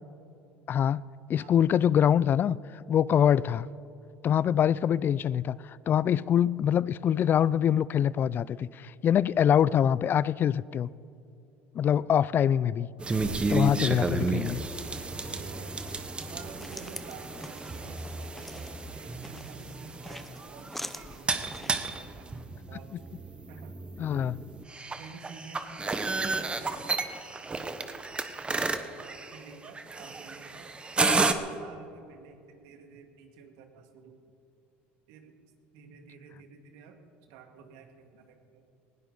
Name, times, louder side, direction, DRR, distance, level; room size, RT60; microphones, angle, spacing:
voice 1, 0.7-1.0 1.3-2.6 2.9-3.7 4.2-10.9 11.7-12.9 13.5-14.6 24.0-24.4, left 9 dB, 40° left, 21 dB, 0.3 m, -24 dB
voice 2, 1.4-1.7 15.2-15.8 16.2-23.2 23.5-24.4 25.0-27.1 27.5-27.8 28.6-34.2 35.1-35.4 35.7-37.0 37.3-38.6, right 5 dB, 75° right, 5 dB, 2.0 m, -50 dB
sound 1, 13.0-31.3, right 3 dB, 20° right, 1.1 m, -32 dB
sound 2, 16.2-21.9, left 1 dB, 5° left, 0.8 m, -45 dB
19.0 x 17.0 x 4.0 m, 2.6 s
supercardioid pair, 90°, 5 cm